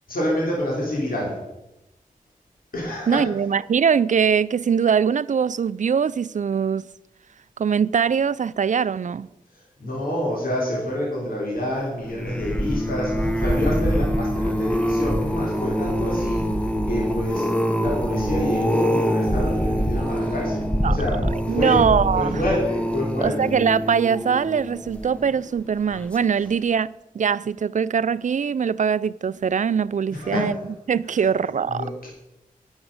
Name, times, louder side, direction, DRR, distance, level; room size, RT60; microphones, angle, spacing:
voice 1, 0.1-1.3 2.7-3.2 9.5-21.8 22.1-23.5 30.1-30.5 31.1-31.3 31.7-32.1, left 1 dB, 85° left, 3.4 m, -27 dB
voice 2, 3.1-6.9 7.6-9.3 20.8-21.0 21.5-22.4 23.2-26.9 27.1-30.5 30.9-31.9, right 7 dB, 60° right, 0.4 m, -22 dB
sound 1, 12.0-25.4 25.9-26.3 26.5-26.6, equal, 10° left, 0.9 m, -25 dB
11.0 x 7.2 x 6.6 m
wide cardioid pair, 85°, 15 cm